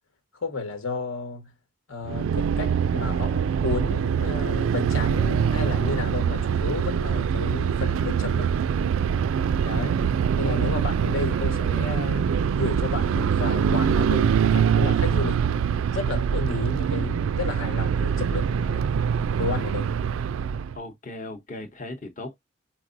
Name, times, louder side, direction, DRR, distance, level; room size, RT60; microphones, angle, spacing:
voice 1, 0.3-1.5 1.9-8.5 9.6-9.9 10.4-12.3 12.6-18.8 19.4-19.9, left 3 dB, 80° left, 1.2 m, -32 dB
sound 1, 2.1-20.8, right 7 dB, 75° right, 0.3 m, -24 dB
voice 2, 9.7-10.1 10.6-10.8 20.7-22.4, left 2 dB, 35° left, 0.8 m, -38 dB
4.6 x 4.2 x 2.5 m
head